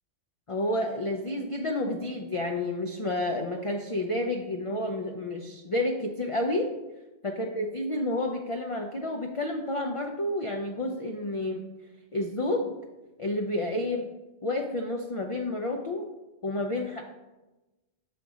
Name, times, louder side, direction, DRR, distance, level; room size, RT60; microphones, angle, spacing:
voice 1, 0.5-6.7 7.2-11.6 12.1-12.7 13.2-14.1 14.4-16.1 16.4-17.0, left 1 dB, 45° left, 2 dB, 0.4 m, -30 dB
5.9 x 3.9 x 4.8 m, 1.1 s
omnidirectional pair, 1.1 m